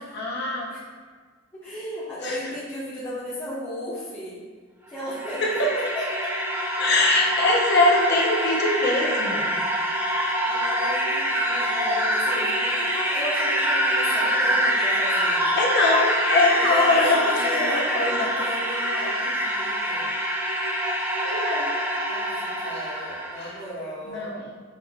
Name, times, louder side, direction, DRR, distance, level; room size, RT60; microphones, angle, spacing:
voice 1, 0.1-0.7 2.2-2.4 5.4-5.7 6.8-9.5 15.6-18.3 21.2-21.7 22.7-22.9 23.4-23.5 24.0-24.4, left 2 dB, 55° left, -2 dB, 0.8 m, -23 dB
voice 2, 1.5-4.4 4.9-5.6 5.9-6.3 8.1-8.6 10.4-15.6 16.6-20.1 22.0-24.3, left 1 dB, 15° left, -14 dB, 1.0 m, -35 dB
sound 1, 4.9-23.5, equal, 10° right, 0.4 m, -25 dB
5.9 x 3.4 x 2.3 m, 1.5 s
head